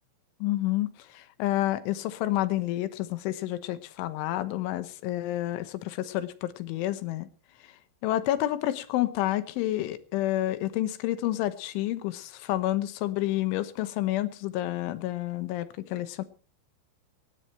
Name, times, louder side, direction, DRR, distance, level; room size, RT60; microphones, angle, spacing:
voice 1, 0.4-7.3 8.0-16.2, left 14 dB, 75° left, 12 dB, 3.4 m, -29 dB
20.0 x 16.5 x 3.2 m, 0.36 s
omnidirectional pair, 5.9 m